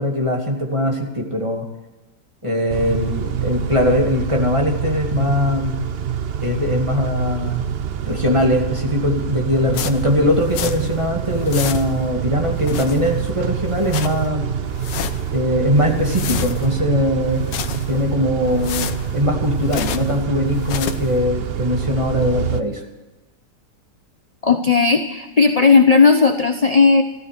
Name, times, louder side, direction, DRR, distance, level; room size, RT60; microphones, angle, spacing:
voice 1, 0.0-1.6 2.4-5.7 6.4-7.7 8.1-14.5 15.3-22.8, left 1 dB, 15° right, 0 dB, 2.5 m, -21 dB
Car / Idling / Accelerating revving vroom, 2.7-22.6, right 8 dB, 50° right, 0.7 m, -26 dB
sound 1, 9.7-11.0 11.3-12.1 12.5-13.3 13.7-14.3 14.7-15.4 15.8-16.8 17.3-18.1 18.5-20.2 20.5-21.2, left 9 dB, 80° left, 1.6 m, -30 dB
voice 2, 24.4-27.0, left 4 dB, 30° left, 6 dB, 0.7 m, -14 dB
14.5 x 14.0 x 6.8 m, 1.1 s
omnidirectional pair, 1.9 m